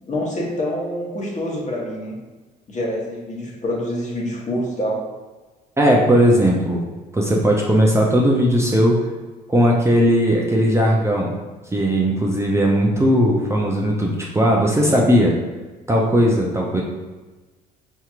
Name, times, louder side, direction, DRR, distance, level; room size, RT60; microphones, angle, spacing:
voice 1, 0.1-2.2 2.7-5.1, equal, 35° left, -2 dB, 1.2 m, -26 dB
voice 2, 5.8-6.8 7.1-9.0 9.5-11.3 11.7-15.3 15.9-16.8, equal, 15° right, -2 dB, 0.6 m, -17 dB
4.6 x 2.8 x 2.4 m, 1.2 s
hypercardioid pair, 55°, 21 cm